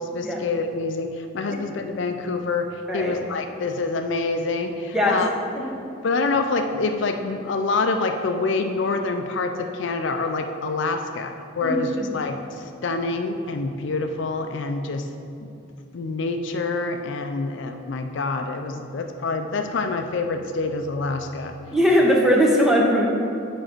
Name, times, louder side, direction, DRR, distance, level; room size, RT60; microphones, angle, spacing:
voice 1, 0.0-5.3 6.0-15.1 15.4-15.5 15.9-21.5, left 3 dB, 60° left, 6 dB, 0.4 m, -26 dB
voice 2, 11.6-12.2 21.7-23.1, equal, 5° right, -2 dB, 0.8 m, -19 dB
8.8 x 5.2 x 4.5 m, 2.6 s
head